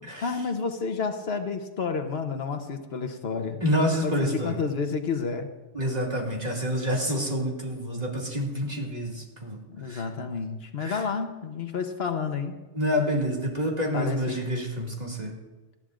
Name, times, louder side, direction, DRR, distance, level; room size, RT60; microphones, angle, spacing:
voice 1, 0.2-5.5 9.7-12.6 13.9-14.4, left 5 dB, 70° left, 6 dB, 1.2 m, -30 dB
voice 2, 3.6-4.6 5.7-9.6 9.9-10.0 10.8-11.0 12.7-15.3, equal, 40° right, -2 dB, 2.3 m, -28 dB
19.0 x 13.5 x 2.5 m, 1.2 s
omnidirectional pair, 1.1 m